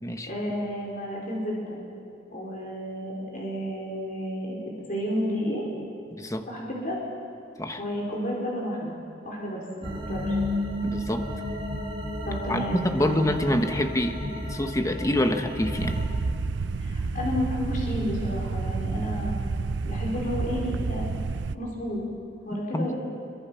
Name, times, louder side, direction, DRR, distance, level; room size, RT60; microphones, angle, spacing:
voice 1, 0.3-1.8 2.3-4.6 4.9-5.6 6.4-7.0 7.8-8.9 9.2-10.4 12.2-13.2 16.8-19.4 19.8-21.1 21.5-22.0 22.4-22.9, equal, 50° left, -3 dB, 4.6 m, -31 dB
sound 1, 9.8-16.1, left 1 dB, 30° right, 4.4 m, -32 dB
voice 2, 10.8-11.3 12.5-16.0 22.7-22.9, left 1 dB, 20° left, 6 dB, 1.2 m, -26 dB
sound 2, 15.7-21.6, right 4 dB, 75° right, 0.5 m, -30 dB
26.0 x 23.0 x 5.8 m, 2.6 s
head